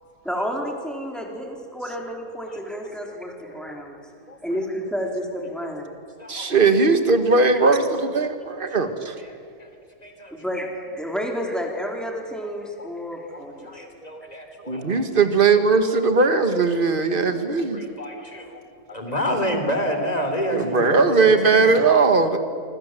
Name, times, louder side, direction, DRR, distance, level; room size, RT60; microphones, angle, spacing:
voice 1, 0.2-4.0 4.4-5.9 10.4-13.8, equal, ahead, 1 dB, 4.0 m, -30 dB
voice 2, 2.5-2.8 3.1-3.2 3.7-3.8 4.3-4.4 6.2-6.6 9.2-9.7 10.0-10.7 12.8-12.9 13.3-15.0 17.3-17.4 17.7-18.6 18.9-21.8, equal, 25° left, 5 dB, 3.6 m, -29 dB
voice 3, 6.3-9.2 14.7-17.8 20.5-22.4, right 4 dB, 35° right, 8 dB, 1.9 m, -19 dB
26.5 x 25.0 x 7.8 m, 2.1 s
omnidirectional pair, 1.7 m